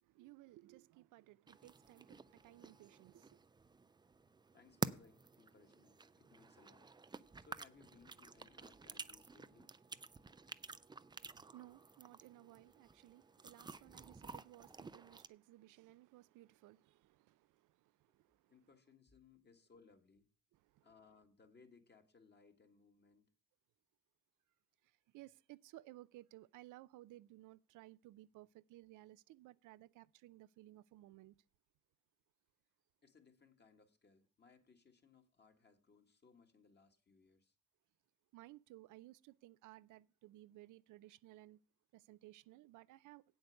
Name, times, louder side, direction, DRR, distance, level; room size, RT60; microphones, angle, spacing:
voice 1, 0.0-3.4 11.3-18.5 20.5-20.9 24.8-31.3 38.3-41.6 41.9-43.2, right 16 dB, 85° right, 0.5 m, -59 dB
sound 1, 1.5-15.3, right 4 dB, 15° right, 0.4 m, -50 dB
voice 2, 4.5-6.9 7.4-9.7 18.1-18.2 18.5-20.3 20.8-23.3 33.0-37.5, left 5 dB, 35° left, 1.8 m, -66 dB
8.4 x 7.9 x 6.6 m
cardioid pair, 90°, 30 cm